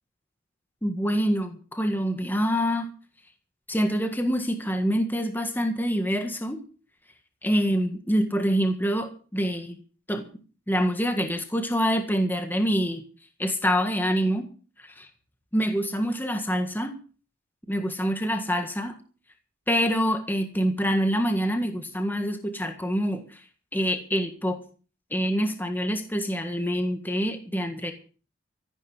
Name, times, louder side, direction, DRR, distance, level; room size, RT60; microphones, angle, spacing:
voice 1, 0.8-2.9 3.7-6.6 7.4-9.8 10.1-10.3 10.7-13.0 13.4-14.5 14.8-15.1 15.5-17.0 17.7-18.9 19.7-23.4 23.7-24.6 25.1-27.9, equal, 10° left, 6 dB, 1.6 m, -26 dB
14.0 x 11.5 x 6.4 m, 0.39 s
head